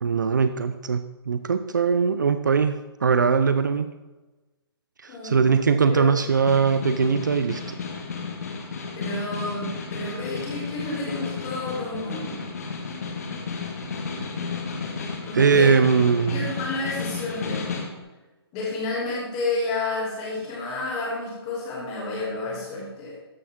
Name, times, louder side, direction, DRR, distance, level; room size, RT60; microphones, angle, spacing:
voice 1, 0.0-4.0 5.0-7.8 15.3-16.5, right 5 dB, 45° right, 11 dB, 0.5 m, -21 dB
voice 2, 5.1-5.4 5.9-6.1 8.9-12.5 15.2-15.8 16.3-17.9 18.5-23.2, left 2 dB, 15° left, -5 dB, 2.5 m, -30 dB
Snare drum, 6.1-18.0, left 5 dB, 35° left, 1.6 m, -33 dB
13.5 x 10.5 x 3.6 m, 1.2 s
hypercardioid pair, 180°, 14 cm